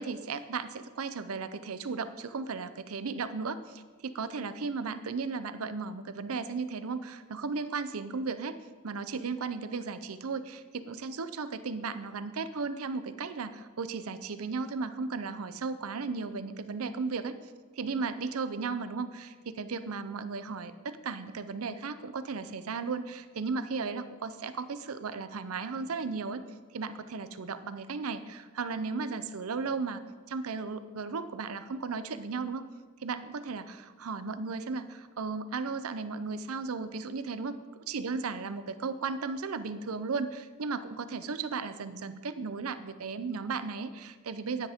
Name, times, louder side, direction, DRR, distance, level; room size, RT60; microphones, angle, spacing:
voice 1, 0.0-8.6 8.8-17.3 17.8-26.4 26.7-30.0 30.3-32.6 33.0-44.7, right 4 dB, 90° right, 12 dB, 0.6 m, -35 dB
10.5 x 9.9 x 3.6 m, 1.4 s
head